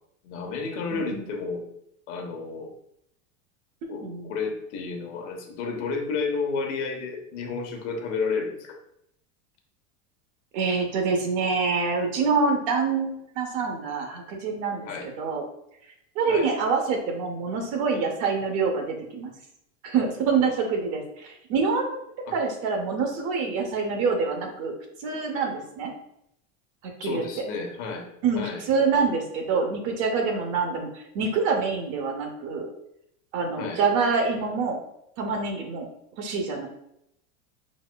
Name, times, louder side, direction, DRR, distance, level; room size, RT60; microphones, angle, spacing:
voice 1, 0.2-1.6 2.1-2.7 3.9-8.8 14.9-15.1 16.3-16.5 22.3-22.4 27.0-28.1 28.3-28.6 33.6-33.8, left 4 dB, 60° left, 2 dB, 1.2 m, -31 dB
voice 2, 0.9-1.2 4.0-4.3 10.5-14.9 15.2-15.4 16.2-19.3 19.8-22.0 22.3-24.7 25.0-25.9 26.8-27.2 28.2-32.7 33.3-34.8 35.2-35.9 36.2-36.7, right 4 dB, 35° right, 3 dB, 0.8 m, -26 dB
5.3 x 4.1 x 2.2 m, 0.77 s
supercardioid pair, 170°, 41 cm